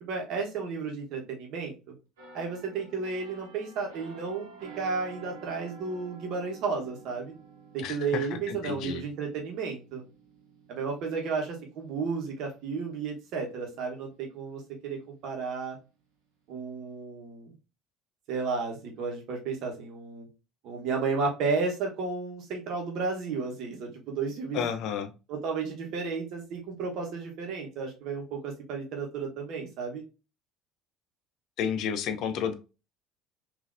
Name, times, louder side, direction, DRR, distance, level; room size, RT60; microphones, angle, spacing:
voice 1, 0.0-1.9 2.3-7.3 7.7-10.0 10.7-15.8 16.5-17.5 18.3-20.3 20.6-24.6 25.3-30.0, right 4 dB, 55° right, 1 dB, 1.1 m, -33 dB
sound 1, 2.2-13.7 14.1-14.4, right 5 dB, 75° right, 1.1 m, -51 dB
voice 2, 7.8-9.0 24.5-25.1 31.6-32.5, left 8 dB, 55° left, 8 dB, 0.5 m, -31 dB
3.8 x 2.6 x 2.5 m, 0.31 s
figure-of-eight pair, 60°, 0 cm